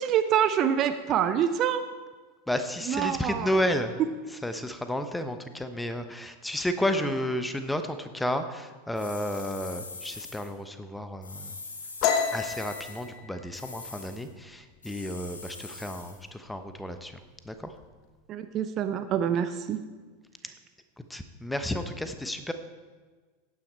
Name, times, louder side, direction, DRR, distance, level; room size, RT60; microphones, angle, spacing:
voice 1, 0.0-1.8 2.9-3.5 18.3-19.8, right 9 dB, 35° right, 10 dB, 0.7 m, -26 dB
voice 2, 2.5-3.9 4.4-11.5 12.3-17.2 17.4-17.7 21.0-22.5, left 1 dB, 5° left, 9 dB, 1.0 m, -32 dB
sound 1, 9.0-10.5 11.2-13.1 13.5-14.2 14.8-16.2, left 3 dB, 75° left, 2.1 m, -43 dB
sound 2, 12.0-15.4 15.8-16.1 16.5-17.0 17.3-18.0, left 7 dB, 45° left, 1.2 m, -31 dB
16.0 x 9.3 x 4.5 m, 1.4 s
figure-of-eight pair, 85°, 0 cm